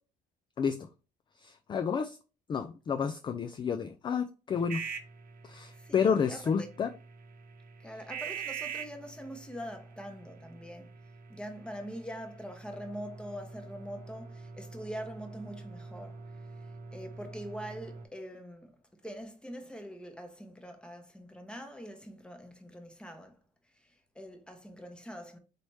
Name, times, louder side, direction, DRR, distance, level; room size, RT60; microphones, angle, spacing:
voice 1, 0.6-0.9 1.4-2.2 2.5-4.8 5.4-6.9, left 6 dB, 30° left, 0.3 m, -30 dB
sound 1, 4.5-18.0, right 6 dB, 55° right, 0.8 m, -45 dB
voice 2, 5.7-6.7 7.8-10.9 11.3-23.4 23.7-25.4, equal, 5° left, 0.9 m, -44 dB
4.2 x 3.2 x 3.1 m
cardioid pair, 110°, 17 cm